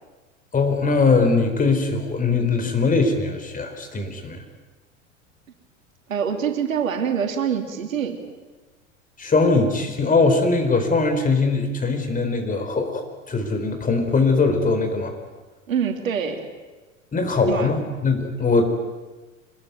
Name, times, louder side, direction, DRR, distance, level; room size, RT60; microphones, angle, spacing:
voice 1, 0.5-4.4 9.2-15.1 17.1-18.6, left 3 dB, 20° left, 6 dB, 4.2 m, -21 dB
voice 2, 6.1-8.2 15.7-16.5 17.5-17.7, right 7 dB, 70° right, 5 dB, 3.0 m, -25 dB
26.0 x 20.5 x 9.3 m, 1.2 s
figure-of-eight pair, 85°, 41 cm